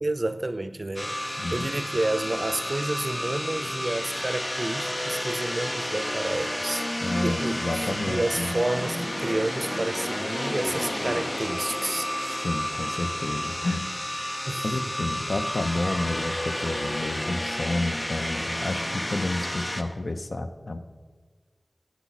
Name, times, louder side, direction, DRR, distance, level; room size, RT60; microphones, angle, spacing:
voice 1, 0.0-12.5 14.5-14.8, right 2 dB, 50° right, 0.4 m, -30 dB
sound 1, 1.0-19.8, left 1 dB, 35° left, 0.6 m, -31 dB
voice 2, 1.4-1.7 7.0-8.5 12.4-13.9 14.2-20.8, left 2 dB, 75° left, 0.5 m, -30 dB
9.2 x 7.0 x 4.0 m
wide cardioid pair, 50°, 0 cm